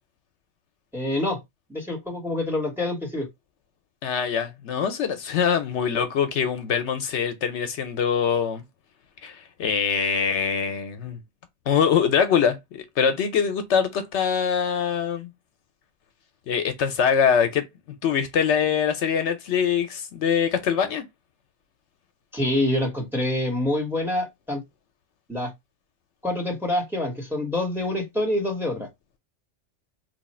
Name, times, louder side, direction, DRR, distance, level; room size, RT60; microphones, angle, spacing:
voice 1, 0.9-1.4 1.7-3.3 22.3-24.6 25.3-25.5 26.2-28.9, left 1 dB, ahead, 1.1 m, -26 dB
voice 2, 4.0-8.6 9.2-11.2 11.7-15.3 16.5-17.6 18.0-21.0, left 7 dB, 70° left, 0.9 m, -23 dB
3.0 x 2.3 x 4.1 m
omnidirectional pair, 1.2 m